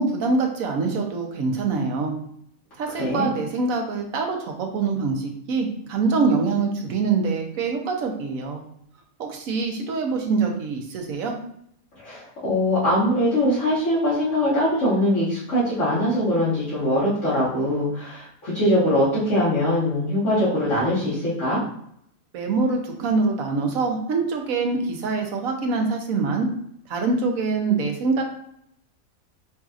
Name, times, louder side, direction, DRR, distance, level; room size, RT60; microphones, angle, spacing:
voice 1, 0.0-2.1 2.8-8.6 9.2-11.3 22.3-26.5 26.9-28.2, right 4 dB, 75° right, 3 dB, 1.2 m, -24 dB
voice 2, 12.0-21.6, left 1 dB, 60° left, -11 dB, 1.8 m, -22 dB
5.6 x 2.7 x 2.4 m, 0.71 s
omnidirectional pair, 1.5 m